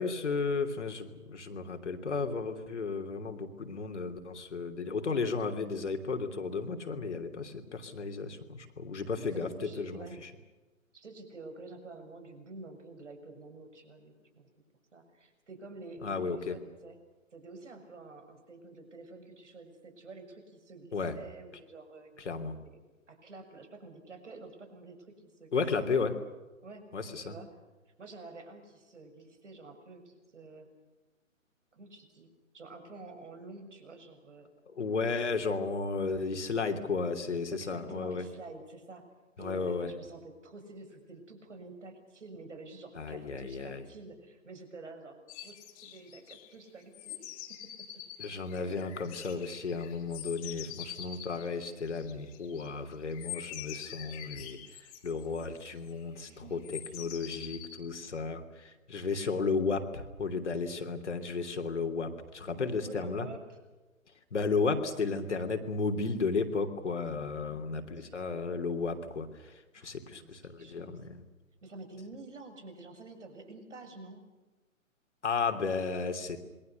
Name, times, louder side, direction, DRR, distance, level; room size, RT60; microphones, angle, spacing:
voice 1, 0.0-9.5 9.8-10.3 16.0-16.6 20.9-21.2 22.2-22.6 25.5-26.2 26.9-27.3 34.7-38.2 39.4-39.9 42.9-43.8 48.2-63.3 64.3-71.2 75.2-76.4, left 4 dB, 55° left, 6 dB, 3.2 m, -34 dB
voice 2, 5.3-5.7 6.8-7.0 9.2-10.2 10.9-14.5 14.9-17.0 17.3-22.1 22.6-22.7 23.1-25.5 25.8-26.1 26.6-26.8 27.2-27.5 27.9-30.7 31.7-32.3 32.5-34.5 37.5-39.0 39.4-47.3 47.6-47.9 48.6-49.1 56.3-56.7 59.1-59.2 62.8-63.6 67.4-68.2 69.7-71.1 71.6-74.2, right 3 dB, 60° right, 7 dB, 6.8 m, -49 dB
sound 1, 45.3-46.5 46.9-52.7 53.1-56.0 56.6-57.8, left 11 dB, 25° left, 3.6 m, -45 dB
27.5 x 23.0 x 6.8 m, 1.1 s
figure-of-eight pair, 135°, 41 cm